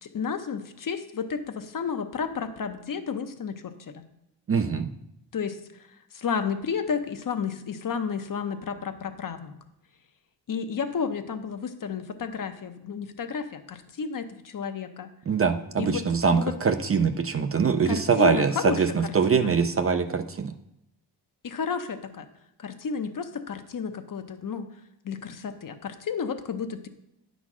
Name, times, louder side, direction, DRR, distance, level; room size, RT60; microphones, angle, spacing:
voice 1, 0.0-4.0 5.3-5.9 6.1-9.5 10.5-15.1 15.8-16.0 16.3-16.5 17.9-19.5 21.4-22.3 22.6-24.7 25.0-26.9, left 6 dB, 50° left, 8 dB, 0.8 m, -32 dB
voice 2, 4.5-4.9 15.3-20.5, right 5 dB, 35° right, 8 dB, 0.5 m, -23 dB
9.4 x 4.1 x 6.1 m, 0.83 s
cardioid pair, 105°, 42 cm